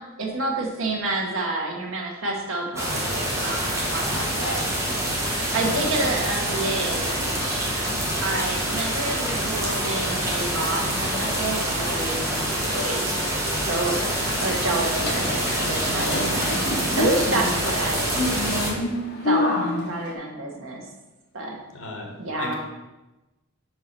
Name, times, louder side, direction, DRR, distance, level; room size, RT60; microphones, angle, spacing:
voice 1, 0.2-4.6 5.5-7.8 8.2-12.2 12.6-13.3 13.6-14.0 14.4-16.6 16.9-18.1 19.2-20.8 21.3-21.6 22.2-22.6, right 2 dB, 65° right, 0 dB, 1.4 m, -29 dB
sound 1, 2.8-18.7, right 1 dB, 15° right, 1.2 m, -26 dB
sound 2, 14.0-20.1, left 2 dB, 55° left, 1.1 m, -28 dB
voice 2, 21.7-22.6, left 1 dB, 70° left, 1 dB, 1.4 m, -36 dB
4.7 x 4.7 x 5.8 m, 1.1 s
head